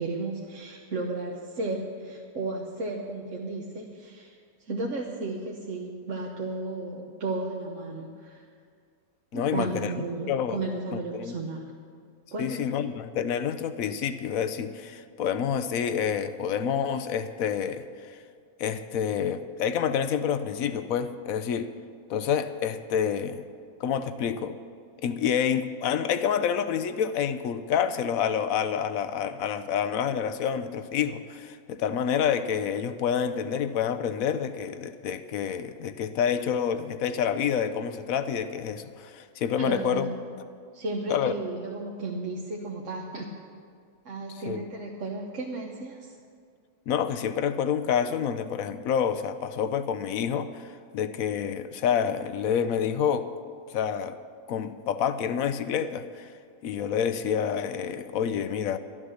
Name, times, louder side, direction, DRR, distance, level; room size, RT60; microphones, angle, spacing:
voice 1, 0.0-8.4 9.3-11.6 12.3-12.7 39.6-40.1 40.7-43.3 44.0-46.2, right 2 dB, 60° right, -1 dB, 1.3 m, -34 dB
voice 2, 9.3-9.9 10.3-10.6 11.1-11.3 12.4-18.2 18.6-21.7 22.1-23.4 23.8-24.6 25.0-40.1 41.1-41.3 44.4-44.6 46.9-53.3 53.7-54.2 54.5-56.3 56.6-58.8, left 8 dB, 70° left, 11 dB, 1.0 m, -28 dB
12.0 x 11.0 x 6.4 m, 2.2 s
omnidirectional pair, 1.6 m